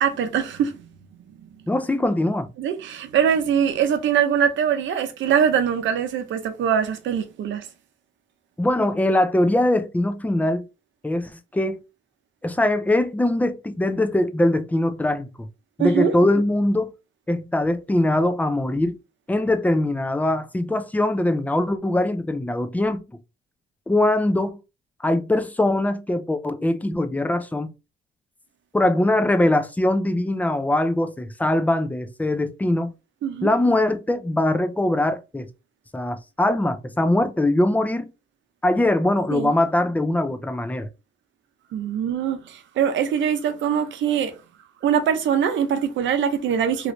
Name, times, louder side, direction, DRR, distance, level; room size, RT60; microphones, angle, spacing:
voice 1, 0.0-0.8 1.4-1.5 2.6-7.7 15.8-16.1 33.2-33.5 39.3-39.5 41.7-44.3 44.8-46.9, right 8 dB, 70° right, 0.7 m, -22 dB
voice 2, 1.7-2.5 8.6-10.6 11.0-11.8 12.4-15.5 15.8-16.9 17.3-19.0 19.3-23.0 23.9-24.6 25.0-27.7 28.7-32.9 33.4-35.5 35.9-38.1 38.6-40.9, left 1 dB, 10° left, 0.5 m, -22 dB
3.1 x 2.5 x 3.0 m
cardioid pair, 90°, 20 cm